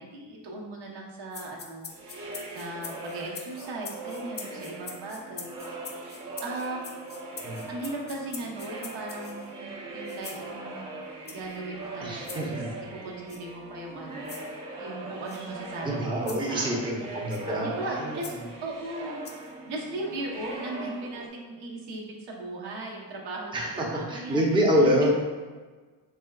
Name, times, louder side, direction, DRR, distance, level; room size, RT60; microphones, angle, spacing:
voice 1, 0.0-2.1 2.5-5.8 6.4-6.9 7.7-10.9 11.3-12.6 12.9-16.9 17.4-18.3 18.6-19.2 19.7-24.9, right 2 dB, 70° right, -2 dB, 1.0 m, -38 dB
sound 1, 1.3-9.5 10.1-10.4 11.2-11.6 12.2-12.4 13.3-13.4 14.2-14.5 15.3-15.4 16.3-16.5 17.3-17.5 18.2-18.4 19.2-19.5, left 5 dB, 25° left, 0.4 m, -43 dB
sound 2, 1.9-21.3, right 2 dB, 45° right, 1.0 m, -40 dB
voice 2, 12.0-12.7 15.8-18.2 23.5-25.1, equal, 10° right, -2 dB, 0.7 m, -26 dB
4.3 x 3.4 x 2.3 m, 1.3 s
cardioid pair, 105°, 42 cm